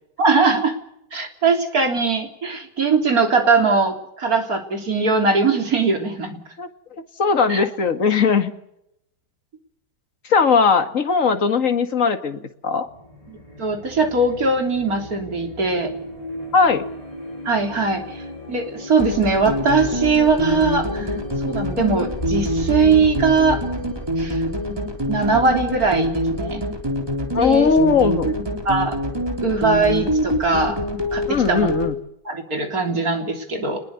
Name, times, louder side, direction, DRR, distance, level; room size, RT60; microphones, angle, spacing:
voice 1, 0.2-0.7 1.1-6.4 7.5-7.6 13.3-15.9 17.5-18.2 18.5-21.1 21.4-23.6 24.2-24.4 25.1-26.6 27.4-27.7 28.7-29.0 29.4-30.8 31.1-31.7 32.3-33.9, right 4 dB, 50° right, 4 dB, 3.8 m, -20 dB
voice 2, 7.2-8.5 10.2-12.9 16.5-16.8 27.3-28.3 31.3-32.0, left 5 dB, 45° left, 8 dB, 2.1 m, -18 dB
sound 1, 12.9-26.3, left 1 dB, 20° left, 4.4 m, -36 dB
sound 2, 19.0-31.9, equal, 15° right, 3.5 m, -25 dB
27.0 x 20.5 x 6.8 m, 0.79 s
omnidirectional pair, 2.0 m